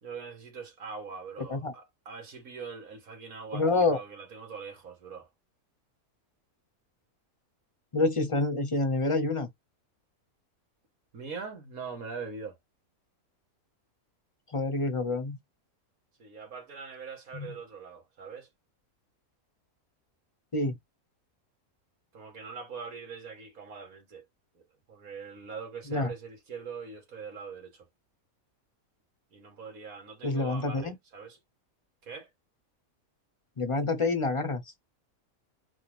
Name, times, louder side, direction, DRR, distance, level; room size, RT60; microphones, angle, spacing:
voice 1, 0.0-5.3 11.1-12.6 16.2-18.5 22.1-24.3 24.5-27.9 29.3-31.4 32.0-32.3, right 5 dB, 70° right, 2.1 m, -42 dB
voice 2, 3.5-4.0 7.9-9.5 14.5-15.4 17.3-17.5 20.5-20.8 25.9-26.1 30.2-30.9 33.6-34.6, left 2 dB, 25° left, 0.8 m, -27 dB
4.9 x 2.4 x 3.4 m
omnidirectional pair, 1.5 m